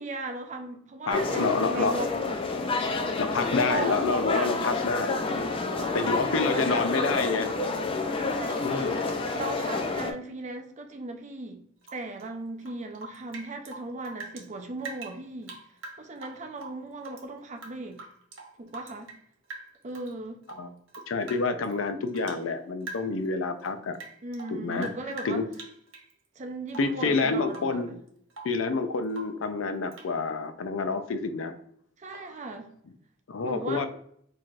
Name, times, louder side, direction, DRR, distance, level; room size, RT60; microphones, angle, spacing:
voice 1, 0.0-2.5 3.6-4.6 5.7-7.1 7.5-7.6 8.3-8.9 9.3-11.6 11.9-15.6 16.0-18.0 18.6-19.1 19.8-20.4 24.2-25.4 26.4-27.9 32.0-32.7 33.4-33.9, right 2 dB, 40° right, 0.6 m, -37 dB
voice 2, 1.1-2.0 3.2-5.2 5.9-7.5 8.6-9.1 20.6-20.7 21.1-24.0 24.5-24.9 25.2-25.5 26.8-28.0 28.4-31.5 32.1-32.2 33.3-33.9, left 4 dB, 85° left, 0.5 m, -28 dB
sound 1, 1.1-10.1, left 3 dB, 30° left, 0.4 m, -29 dB
Rain / Drip, 11.8-14.5 14.8-17.2 17.6-19.2 19.5-20.1 20.4-22.5 22.8-23.3 23.6-26.1 26.7-27.0 27.5-27.8 28.1-28.6 29.1-29.5 29.9-30.1, right 3 dB, 85° right, 0.8 m, -44 dB
4.5 x 2.8 x 2.4 m
head